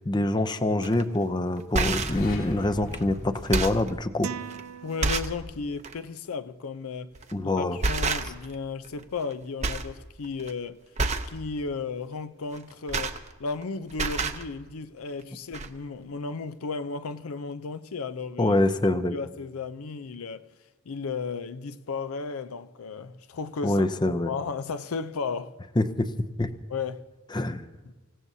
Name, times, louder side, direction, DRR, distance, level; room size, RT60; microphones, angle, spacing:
voice 1, 0.1-4.3 7.3-7.8 18.4-19.2 23.6-24.3 25.8-26.1 26.4-26.5 27.3-27.6, left 1 dB, 20° left, 0.5 m, -25 dB
sound 1, 0.8-1.0 1.6-2.2 2.9-3.0 3.4-3.9 4.5-4.6 5.0-5.4 5.8-6.0 7.1-7.4 7.8-8.5 8.8-9.3 9.6-9.9 10.2-10.5 11.0-11.4 12.5-13.6 13.9-14.4 15.2-15.3 15.5-15.7, right 3 dB, 30° right, 0.7 m, -28 dB
sound 2, 1.7-4.6, equal, 65° left, 3.6 m, -38 dB
sound 3, 4.2-5.7, right 8 dB, 85° right, 0.4 m, -39 dB
voice 2, 4.8-7.1 7.5-10.8 11.3-18.6 19.1-20.5 20.9-23.9 24.3-25.6 26.7-27.1 27.9-28.0, left 4 dB, 85° left, 0.6 m, -34 dB
26.0 x 16.5 x 2.7 m
head